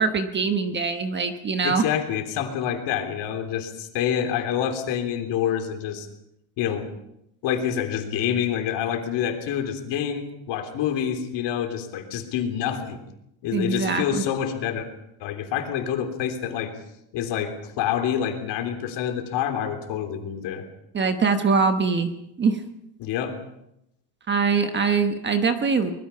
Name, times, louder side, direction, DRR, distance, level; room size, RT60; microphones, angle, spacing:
voice 1, 0.0-1.9 13.5-14.2 20.9-22.1 22.4-22.6 24.3-25.9, right 5 dB, 20° right, 8 dB, 1.2 m, -23 dB
voice 2, 1.6-6.1 6.6-6.9 7.4-13.0 13.4-14.9 15.2-16.7 17.1-20.6 23.0-23.4, left 9 dB, 55° left, 6 dB, 3.4 m, -27 dB
24.5 x 21.0 x 5.7 m, 0.81 s
cardioid pair, 170°, 48 cm